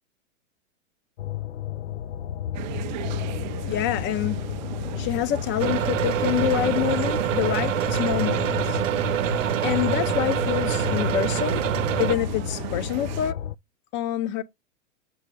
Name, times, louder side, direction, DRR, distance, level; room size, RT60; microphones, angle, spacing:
Evolving Drone, 1.2-13.6, left 11 dB, 70° left, 0.6 m, -32 dB
sound 1, 2.5-13.3, right 18 dB, 40° right, 0.4 m, -37 dB
voice 1, 3.7-4.4 5.0-8.8 9.6-11.7 12.0-13.4 13.9-14.4, left 13 dB, 30° left, 0.7 m, -26 dB
sound 2, 5.6-12.1, right 11 dB, 75° right, 0.7 m, -26 dB
7.3 x 5.5 x 3.6 m
hypercardioid pair, 115°, 38 cm